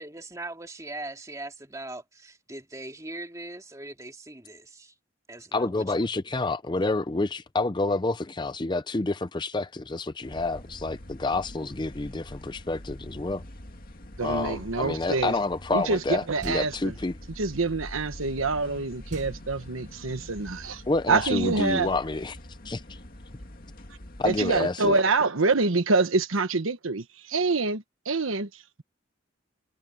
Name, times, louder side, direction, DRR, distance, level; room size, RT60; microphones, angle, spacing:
voice 1, 0.0-4.9 5.3-6.1, right 2 dB, 15° right, 2.4 m, -40 dB
voice 2, 5.5-13.4 14.2-17.1 20.9-22.4 22.6-23.0 24.2-25.0, left 2 dB, 20° left, 0.5 m, -28 dB
sound 1, 10.2-24.6, left 1 dB, 45° left, 2.1 m, -44 dB
voice 3, 14.2-15.3 15.7-16.9 17.4-20.8 21.1-21.9 24.2-28.8, right 3 dB, 85° right, 1.2 m, -26 dB
sound 2, 16.4-17.1 19.1-20.1, right 2 dB, 40° right, 0.9 m, -42 dB
head